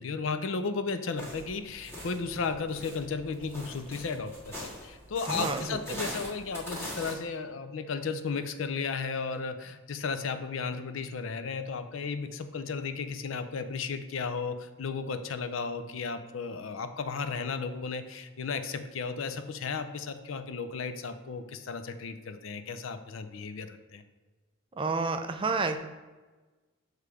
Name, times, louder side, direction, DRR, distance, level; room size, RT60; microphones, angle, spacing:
voice 1, 0.0-24.0, left 5 dB, 65° left, 10 dB, 0.5 m, -34 dB
sound 1, 1.2-7.1, equal, 10° left, 1.6 m, -41 dB
voice 2, 5.3-6.0 24.8-25.8, right 3 dB, 25° right, 8 dB, 0.3 m, -30 dB
6.8 x 3.2 x 4.8 m, 1.2 s
head